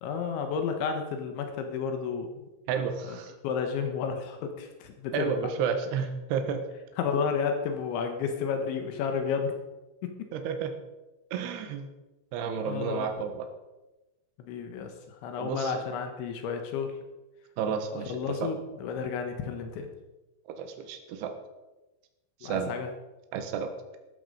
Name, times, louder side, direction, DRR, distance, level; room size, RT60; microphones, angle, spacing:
voice 1, 0.0-2.4 3.0-3.2 3.4-5.3 7.0-9.6 12.7-13.1 14.4-16.9 18.1-19.9 22.4-22.9, left 6 dB, 80° left, 5 dB, 3.6 m, -31 dB
voice 2, 2.7-3.3 5.1-6.6 10.3-10.7 11.3-11.9 12.3-13.5 15.4-15.8 17.6-18.5 20.6-21.3 22.4-22.7 23.3-23.7, right 6 dB, 70° right, 6 dB, 3.3 m, -31 dB
13.5 x 12.5 x 5.1 m, 1.1 s
omnidirectional pair, 5.3 m